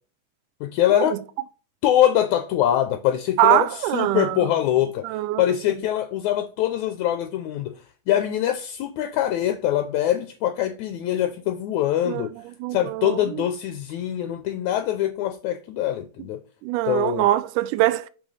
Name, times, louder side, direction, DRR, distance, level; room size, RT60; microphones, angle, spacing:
voice 1, 0.6-1.2 1.8-5.1 5.4-7.7 8.1-12.3 12.7-16.4 16.9-17.3, left 12 dB, 80° left, 1.8 m, -23 dB
voice 2, 3.4-4.5 5.0-5.5 12.1-12.3 12.6-13.4 16.6-18.1, right 15 dB, 80° right, 2.0 m, -23 dB
6.3 x 6.1 x 3.2 m
omnidirectional pair, 3.8 m